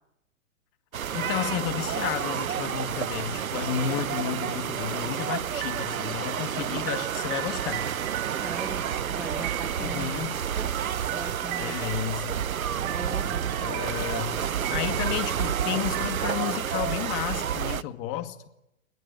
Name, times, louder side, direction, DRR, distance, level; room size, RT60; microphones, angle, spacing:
Beach goers and surf, 0.9-17.8, right 8 dB, 75° right, 0.9 m, -30 dB
voice 1, 1.1-7.9 9.8-10.4 11.6-12.3 13.6-14.4 14.7-18.4, left 11 dB, 30° left, 9 dB, 2.2 m, -32 dB
sound 1, 5.6-16.3, right 18 dB, 35° right, 1.5 m, -39 dB
voice 2, 8.4-10.2 10.6-10.7 11.1-11.8 12.8-13.5, right 1 dB, ahead, 7 dB, 0.9 m, -39 dB
21.5 x 21.0 x 8.9 m, 0.86 s
figure-of-eight pair, 115°, 42 cm